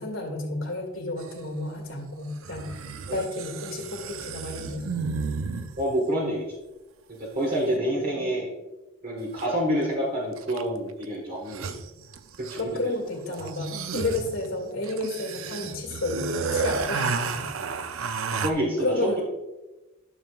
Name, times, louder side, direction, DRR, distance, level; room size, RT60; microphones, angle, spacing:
voice 1, 0.0-5.1 7.6-8.5 12.6-17.5 18.8-19.2, left 2 dB, 85° left, 0 dB, 2.2 m, -32 dB
sound 1, 1.2-1.3 2.4-6.0 9.4-9.5 10.4-10.8 11.0-11.1 11.3-12.8 13.3-18.5, right 5 dB, 80° right, 0.5 m, -32 dB
voice 2, 5.8-6.5 7.2-8.5 9.0-11.6 12.4-12.7 13.4-13.5 18.4-19.2, equal, 45° right, -3 dB, 1.4 m, -27 dB
12.0 x 6.8 x 2.4 m, 1.1 s
head